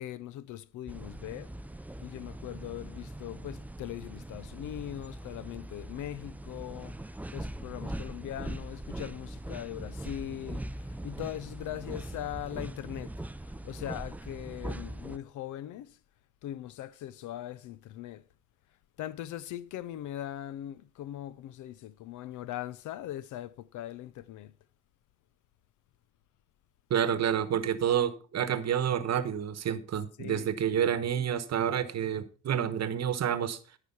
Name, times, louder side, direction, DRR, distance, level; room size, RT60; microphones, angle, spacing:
voice 1, 0.0-1.5 2.0-13.1 13.4-16.0 16.4-18.2 19.0-24.5 30.2-30.5, left 12 dB, 80° left, 0.6 m, -40 dB
sound 1, 0.9-15.2, right 1 dB, 5° right, 0.4 m, -41 dB
voice 2, 26.9-33.6, right 9 dB, 60° right, 1.0 m, -29 dB
14.0 x 4.9 x 5.4 m
cardioid pair, 90°, 30 cm